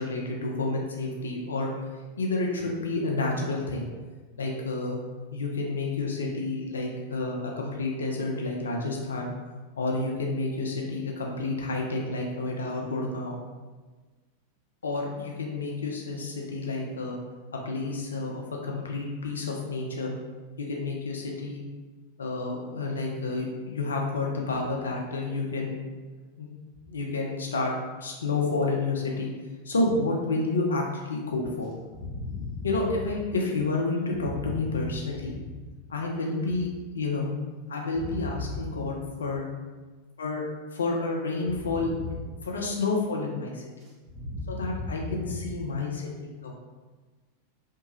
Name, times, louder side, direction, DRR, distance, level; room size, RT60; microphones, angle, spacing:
voice 1, 0.0-1.8 2.2-3.9 4.4-5.0 5.3-9.3 9.8-13.4 14.8-17.2 17.7-20.1 20.6-21.7 22.2-25.9 26.4-26.5 26.9-27.7 28.0-29.3 29.7-31.7 32.6-35.3 35.9-37.3 37.7-39.4 40.2-40.4 40.7-41.9 42.4-43.7 44.5-46.6, left 3 dB, 70° left, 0 dB, 0.4 m, -30 dB
voice 2, 31.9-32.7 34.2-34.8 35.3-35.4 37.9-38.5 41.7-42.1 44.1-45.3, left 3 dB, 25° right, -5 dB, 1.0 m, -35 dB
2.8 x 2.2 x 3.0 m, 1.3 s
figure-of-eight pair, 90°, 0 cm